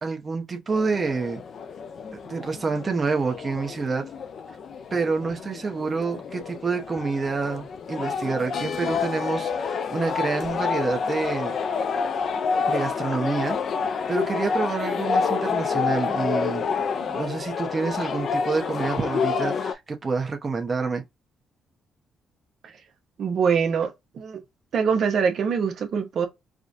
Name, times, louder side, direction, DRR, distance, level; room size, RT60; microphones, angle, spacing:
voice 1, 0.0-1.4 2.2-4.1 4.9-11.5 12.7-13.6 14.1-16.6 17.0-21.0, right 4 dB, 35° right, 0.9 m, -28 dB
sound 1, 0.7-19.7, left 5 dB, 55° left, 0.5 m, -28 dB
voice 2, 23.2-24.4 24.7-26.3, right 6 dB, 60° right, 0.9 m, -24 dB
4.8 x 2.3 x 2.6 m
cardioid pair, 90°, 0 cm